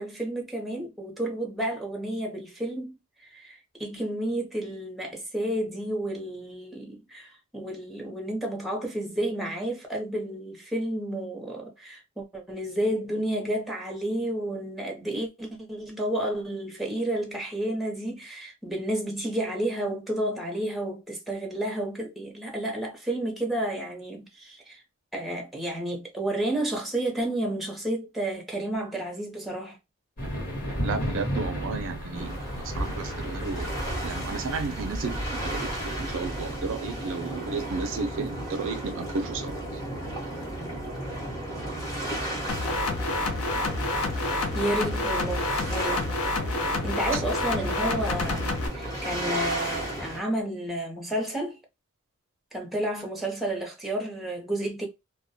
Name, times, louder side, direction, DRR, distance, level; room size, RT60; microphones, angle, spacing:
voice 1, 0.0-3.0 3.2-24.8 25.1-29.8 44.5-46.1 46.8-51.6 52.5-54.9, right 1 dB, ahead, 0.7 m, -31 dB
sound 1, 30.2-36.6, equal, 40° left, 1.2 m, -34 dB
voice 2, 30.8-32.4 32.7-33.7 34.0-39.5 47.1-47.2, right 4 dB, 60° right, 0.4 m, -33 dB
sound 2, 32.1-50.2, right 1 dB, 15° left, 0.9 m, -34 dB
sound 3, 42.5-48.7, left 2 dB, 70° left, 0.5 m, -28 dB
2.2 x 2.1 x 2.6 m
head